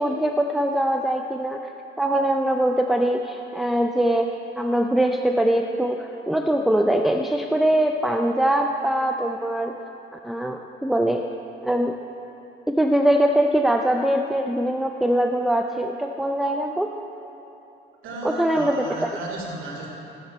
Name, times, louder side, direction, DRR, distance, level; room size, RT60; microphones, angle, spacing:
voice 1, 0.0-1.6 2.0-9.7 10.2-11.2 11.6-11.9 12.8-16.9 18.2-19.2, right 1 dB, ahead, 3 dB, 0.5 m, -22 dB
voice 2, 18.0-19.9, right 2 dB, 90° right, -4 dB, 2.5 m, -34 dB
14.0 x 7.9 x 4.3 m, 3.0 s
cardioid pair, 90°, 20 cm